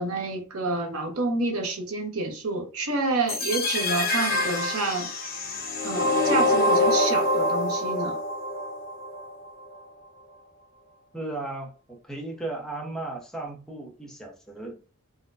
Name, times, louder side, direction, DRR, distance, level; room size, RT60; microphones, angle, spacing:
voice 1, 0.0-5.1 5.8-8.2, right 3 dB, 70° right, 0.9 m, -28 dB
sound 1, 3.3-9.3, left 1 dB, 45° left, 1.1 m, -25 dB
voice 2, 11.1-14.8, right 2 dB, 5° left, 0.7 m, -36 dB
4.1 x 2.2 x 2.4 m
head